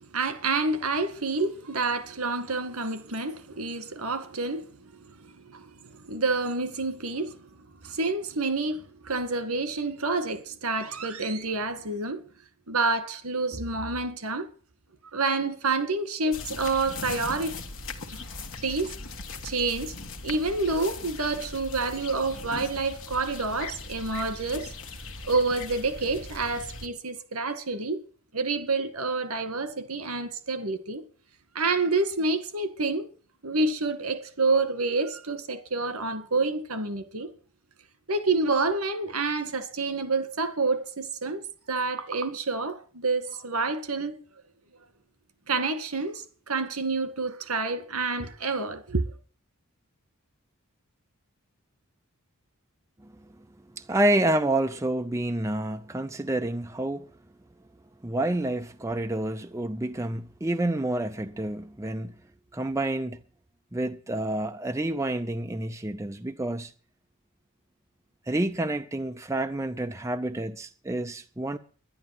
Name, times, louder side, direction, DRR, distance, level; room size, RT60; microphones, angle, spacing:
voice 1, 0.1-7.4 7.8-12.2 12.7-14.5 15.1-17.6 18.1-18.2 18.6-18.9 19.4-19.9 20.2-24.7 25.2-28.0 28.3-31.0 31.5-33.1 33.4-37.3 38.1-44.2 45.5-49.1, right 3 dB, 80° right, 2.1 m, -28 dB
sound 1, 16.3-26.9, left 3 dB, 65° left, 1.5 m, -39 dB
voice 2, 53.7-57.1 58.0-62.2 62.5-63.2 63.7-66.7 68.3-71.6, right 1 dB, 15° right, 0.6 m, -28 dB
11.0 x 11.0 x 7.7 m
head